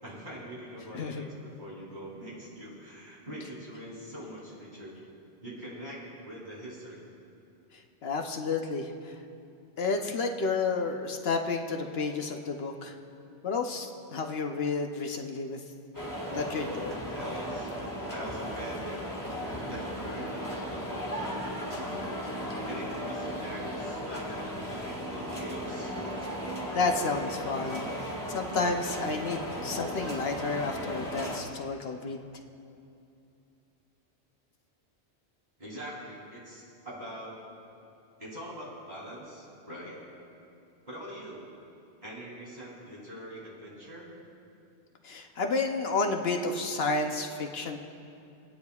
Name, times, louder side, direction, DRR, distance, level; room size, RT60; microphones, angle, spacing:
voice 1, 0.0-5.0 5.4-7.0 17.1-19.2 19.5-22.1 22.6-25.9 35.6-37.4 38.2-40.1 40.9-41.5 42.0-44.1, equal, 45° right, -7 dB, 3.4 m, -43 dB
voice 2, 7.7-9.2 9.8-13.0 13.4-15.6 16.3-17.0 26.2-26.3 26.7-32.2 45.0-47.8, left 4 dB, 70° left, 4 dB, 1.0 m, -31 dB
sound 1, 15.9-31.4, equal, 20° left, 1.7 m, -36 dB
28.0 x 9.7 x 2.3 m, 2.6 s
omnidirectional pair, 1.1 m